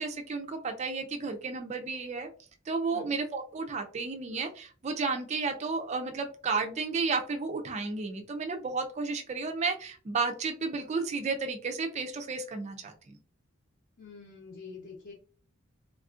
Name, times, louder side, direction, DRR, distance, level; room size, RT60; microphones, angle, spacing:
voice 1, 0.0-2.3 2.7-13.1, right 4 dB, 30° right, 4 dB, 0.3 m, -32 dB
voice 2, 14.0-15.1, left 5 dB, 55° left, -3 dB, 0.7 m, -46 dB
3.3 x 2.4 x 2.4 m, 0.40 s
head